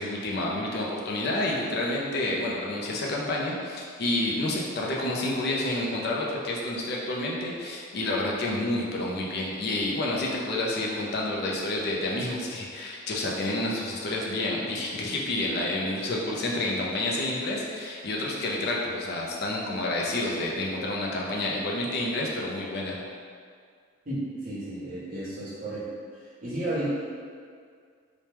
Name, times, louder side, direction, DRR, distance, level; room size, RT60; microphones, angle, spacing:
voice 1, 0.0-23.0, left 1 dB, 50° left, -3 dB, 0.4 m, -29 dB
voice 2, 24.0-25.8 26.4-26.9, right 1 dB, 40° right, -11 dB, 1.0 m, -32 dB
2.9 x 2.1 x 3.3 m, 2.1 s
head